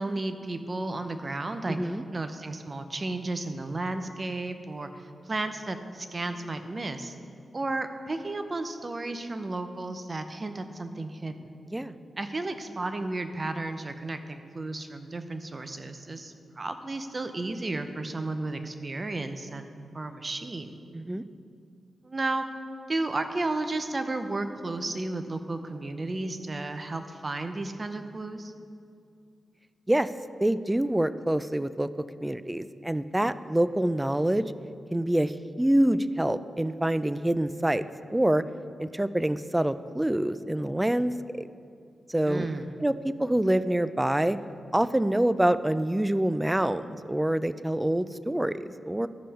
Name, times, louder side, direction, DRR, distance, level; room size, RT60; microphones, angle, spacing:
voice 1, 0.0-7.1 7.5-11.6 12.2-20.8 22.0-22.4 22.9-28.5 42.3-42.7, right 2 dB, 40° right, 8 dB, 0.7 m, -33 dB
voice 2, 1.7-2.0 11.7-11.9 20.9-21.2 29.9-30.1 30.4-31.9 32.2-34.5 34.9-37.8 38.1-38.5 38.8-41.5 42.1-42.5 42.8-44.4 44.7-49.1, right 1 dB, 15° right, 14 dB, 0.4 m, -26 dB
13.5 x 5.5 x 4.2 m, 2.4 s
cardioid pair, 50°, 0 cm